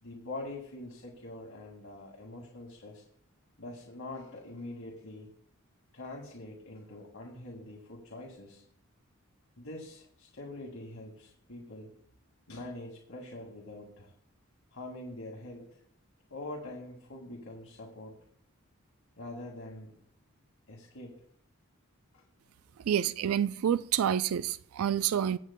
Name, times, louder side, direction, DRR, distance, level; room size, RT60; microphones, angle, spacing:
voice 1, 0.0-3.0 3.6-5.3 5.9-8.6 9.6-11.9 12.5-14.1 14.7-15.8 16.3-18.2 19.2-20.0 20.7-21.2 22.1-22.2, left 2 dB, 80° left, 2.1 m, -44 dB
voice 2, 22.9-25.4, right 9 dB, 85° right, 0.4 m, -28 dB
22.5 x 8.2 x 2.2 m
head